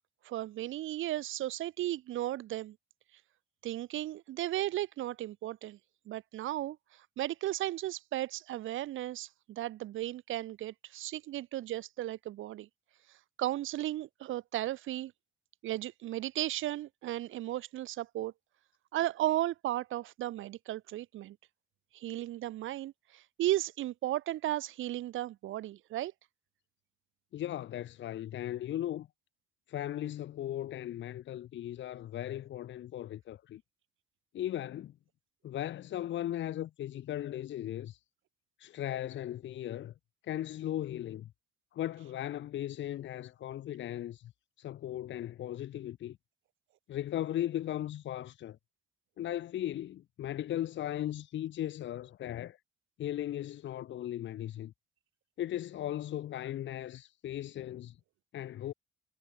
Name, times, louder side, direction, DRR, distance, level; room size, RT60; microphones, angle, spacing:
voice 1, 0.2-2.8 3.6-5.8 6.1-12.7 13.4-15.1 15.6-18.3 18.9-21.4 21.9-26.1, right 14 dB, 80° right, 2.1 m, -35 dB
voice 2, 27.3-29.1 29.7-33.6 34.3-34.9 35.4-38.0 38.6-39.9 40.2-41.3 41.7-44.3 44.6-46.2 46.9-48.6 49.2-52.6 53.0-54.7 55.4-58.0 58.3-58.7, left 12 dB, 70° left, 1.2 m, -37 dB
cardioid pair, 90°, 20 cm